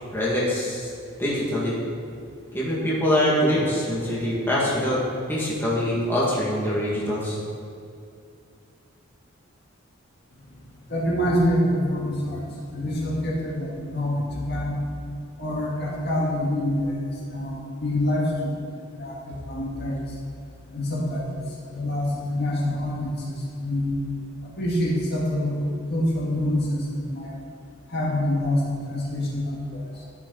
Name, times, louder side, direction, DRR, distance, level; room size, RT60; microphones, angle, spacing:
voice 1, 0.1-0.9 1.2-1.8 2.5-5.0 5.3-7.4, left 1 dB, 10° left, -7 dB, 2.1 m, -24 dB
voice 2, 10.9-12.4 12.7-14.8 15.4-17.0 17.3-18.6 18.9-20.0 20.7-21.4 21.7-24.0 24.4-27.3 27.9-29.8, left 1 dB, 55° left, -4 dB, 1.9 m, -26 dB
12.0 x 8.6 x 4.1 m, 2.5 s
head